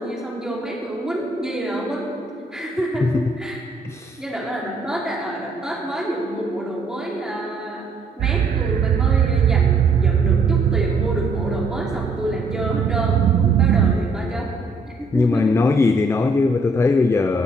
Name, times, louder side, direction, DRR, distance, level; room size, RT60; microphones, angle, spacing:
voice 1, 0.0-2.1 2.5-3.1 3.4-3.6 4.2-7.9 8.2-14.5 14.9-15.5, equal, 5° right, -4 dB, 3.0 m, -27 dB
voice 2, 3.8-4.2 15.1-17.4, left 3 dB, 15° left, 8 dB, 0.4 m, -19 dB
sound 1, 8.2-13.9, right 9 dB, 60° right, 0.5 m, -19 dB
19.0 x 14.0 x 4.3 m, 2.3 s
cardioid pair, 165°, 16 cm